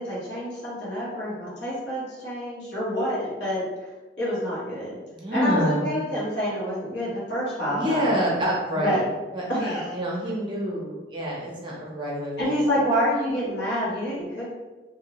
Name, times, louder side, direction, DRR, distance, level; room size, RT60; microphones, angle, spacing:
voice 1, 0.0-3.6 4.2-5.0 5.3-8.2 8.7-9.0 9.5-9.9 12.4-14.5, equal, 75° left, -9 dB, 1.2 m, -27 dB
voice 2, 5.1-5.8 7.7-9.0 9.3-12.4, equal, 30° right, -4 dB, 0.6 m, -27 dB
2.7 x 2.6 x 2.9 m, 1.2 s
head